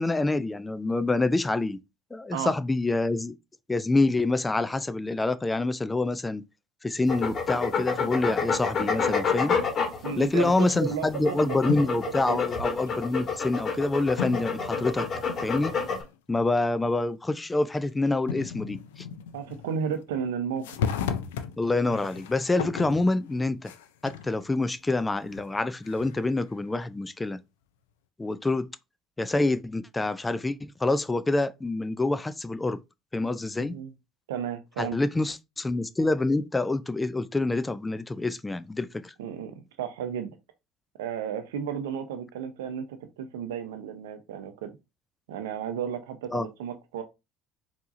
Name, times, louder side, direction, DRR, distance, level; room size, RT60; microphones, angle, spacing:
voice 1, 0.0-1.8 2.1-3.3 3.7-6.4 6.8-9.6 10.2-15.1 15.4-15.7 16.3-19.1 21.6-23.7 24.0-27.4 28.2-28.7 29.2-32.8 33.1-33.7 34.8-39.1 46.3-46.5, left 2 dB, 15° left, 0.4 m, -26 dB
sound 1, 7.1-16.0, left 5 dB, 40° left, 1.6 m, -28 dB
voice 2, 10.0-11.6 12.3-12.4 19.3-21.0 33.6-33.9 34.3-35.0 39.2-40.4 41.0-44.7 45.3-47.0, right 8 dB, 75° right, 0.7 m, -33 dB
sound 2, 10.3-11.1 11.6-12.1 12.9-13.0 14.2-16.1 16.4-16.5 17.8-17.9 18.3-20.2 20.6-24.3 24.8-26.4, left 8 dB, 75° left, 0.4 m, -36 dB
4.6 x 2.9 x 2.5 m
hypercardioid pair, 65°, 0 cm